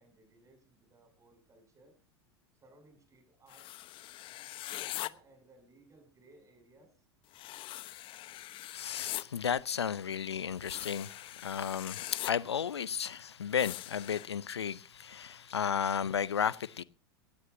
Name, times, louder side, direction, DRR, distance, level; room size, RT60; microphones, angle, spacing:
voice 1, 0.0-2.0 2.6-3.7 4.4-6.9, right 2 dB, 20° right, 7.6 m, -61 dB
sound 1, 3.5-5.1 7.3-9.2 10.6-12.3 13.6-14.3, left 16 dB, 40° left, 0.9 m, -42 dB
voice 2, 8.7-16.8, left 8 dB, 75° left, 0.6 m, -33 dB
19.0 x 17.0 x 2.8 m
figure-of-eight pair, 85°, 14 cm